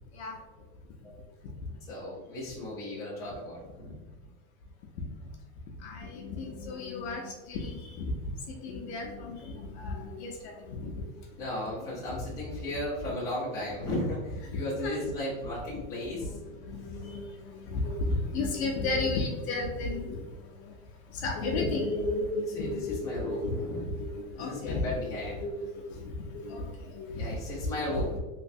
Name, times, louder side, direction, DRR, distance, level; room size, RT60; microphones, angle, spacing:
voice 1, 1.9-4.0 11.4-16.3 22.5-23.9 24.3-25.4 27.2-28.1, left 1 dB, 10° left, -7 dB, 0.6 m, -35 dB
voice 2, 5.8-8.1 8.6-11.1 14.5-14.9 16.1-20.3 20.6-20.7 21.1-25.0 25.2-27.3 27.6-28.0, left 2 dB, 50° left, 1 dB, 0.6 m, -33 dB
3.1 x 3.1 x 2.6 m, 1.2 s
supercardioid pair, 165°, 43 cm